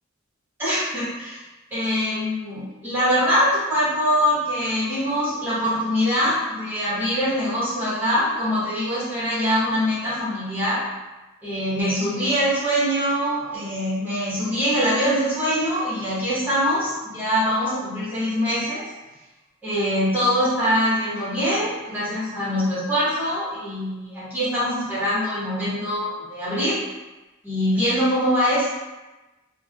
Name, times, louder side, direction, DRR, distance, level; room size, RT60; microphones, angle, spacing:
voice 1, 0.6-1.4 1.7-10.8 11.4-18.8 19.6-26.8 27.4-28.7, equal, 10° right, -11 dB, 1.2 m, -23 dB
3.2 x 2.2 x 2.4 m, 1.1 s
head